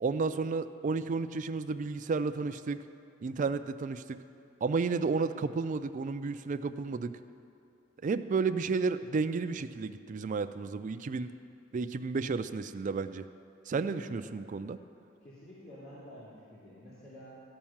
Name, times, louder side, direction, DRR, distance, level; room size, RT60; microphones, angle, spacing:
voice 1, 0.0-2.8 3.2-4.2 4.6-7.2 8.0-11.3 11.7-13.2 13.7-14.8, right 4 dB, 40° right, 10 dB, 0.4 m, -32 dB
voice 2, 13.8-14.2 15.2-17.4, equal, 55° left, -10 dB, 2.3 m, -49 dB
12.5 x 5.5 x 7.2 m, 2.7 s
head